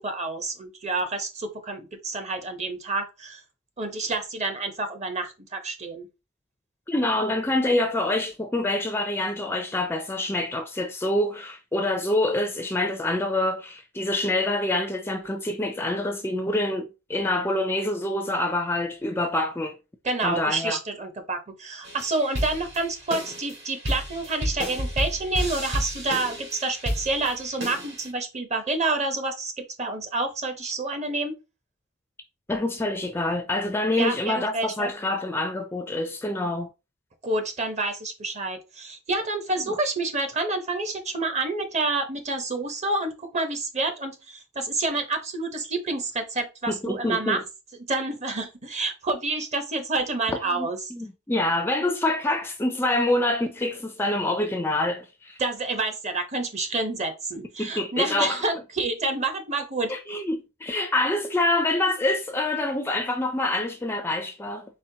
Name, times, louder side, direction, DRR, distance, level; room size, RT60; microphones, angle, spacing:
voice 1, 0.0-3.4 3.8-6.1 20.0-31.3 34.0-34.9 37.2-47.4 47.8-50.8 55.4-59.9, right 2 dB, 35° right, 0.8 m, -28 dB
voice 2, 6.9-19.8 20.2-20.8 32.5-36.7 46.7-47.4 50.3-55.4 57.6-58.4 59.9-64.6, left 2 dB, 10° left, 0.4 m, -26 dB
sound 1, 21.8-28.1, equal, 60° right, 1.9 m, -32 dB
4.3 x 4.1 x 2.7 m
head